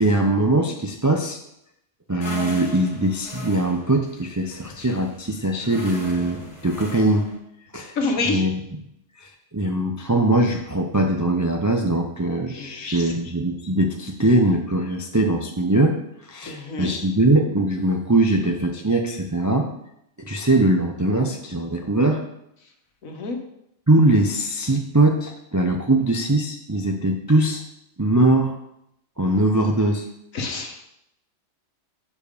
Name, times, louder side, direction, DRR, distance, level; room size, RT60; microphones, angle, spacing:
voice 1, 0.0-1.4 2.1-7.3 7.7-7.9 8.3-8.5 9.2-16.0 16.3-19.7 20.2-22.2 23.9-27.6 28.0-28.6 29.2-30.0, right 2 dB, 30° right, 2 dB, 0.3 m, -21 dB
sound 1, 2.2-7.4, left 2 dB, 55° left, 2.0 m, -39 dB
voice 2, 7.9-8.4 12.6-13.2 16.4-17.0 22.6-22.7 23.0-23.4 30.3-30.8, left 3 dB, 80° left, 3 dB, 1.5 m, -28 dB
6.9 x 4.8 x 5.0 m, 0.78 s
omnidirectional pair, 1.4 m